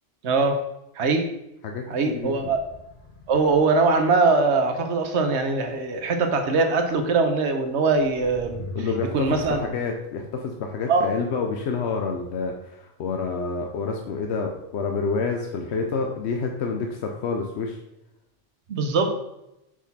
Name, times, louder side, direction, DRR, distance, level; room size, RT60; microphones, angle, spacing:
voice 1, 0.2-0.6 1.0-1.3 1.9-2.6 3.3-8.6 9.1-9.6 10.9-11.1 18.7-19.2, right 3 dB, 70° right, 5 dB, 1.1 m, -22 dB
voice 2, 1.6-2.4 8.7-17.8, left 4 dB, 70° left, 3 dB, 0.9 m, -28 dB
sound 1, 2.2-3.8 6.9-7.0 7.9-9.7, left 1 dB, 45° left, 1.1 m, -40 dB
6.1 x 4.0 x 4.1 m, 0.87 s
omnidirectional pair, 1.2 m